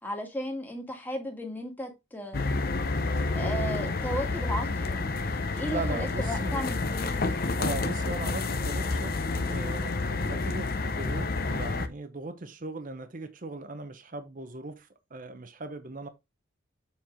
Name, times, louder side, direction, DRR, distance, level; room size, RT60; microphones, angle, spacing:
voice 1, 0.0-2.6 3.4-5.3 5.6-7.3, equal, 10° left, 1.8 m, -35 dB
sound 1, 2.3-11.9, left 3 dB, 50° left, 0.7 m, -29 dB
voice 2, 5.7-6.6 7.6-16.1, right 2 dB, 40° right, 0.8 m, -38 dB
7.2 x 4.7 x 3.6 m
head